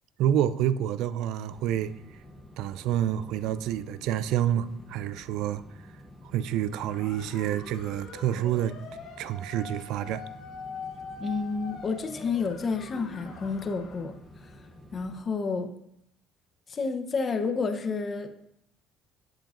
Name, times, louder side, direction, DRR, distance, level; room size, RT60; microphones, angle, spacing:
voice 1, 0.2-1.9 2.6-5.6 6.3-8.7 9.2-10.2, right 11 dB, 75° right, 15 dB, 0.3 m, -28 dB
sound 1, 1.5-15.2, left 1 dB, 10° left, 0.9 m, -50 dB
sound 2, 6.9-14.1, left 4 dB, 65° left, 1.0 m, -43 dB
voice 2, 11.2-14.2 14.4-14.5 14.9-15.7 16.7-18.3, left 4 dB, 40° left, 7 dB, 0.8 m, -30 dB
7.5 x 7.1 x 2.5 m, 0.74 s
supercardioid pair, 80°, 0 cm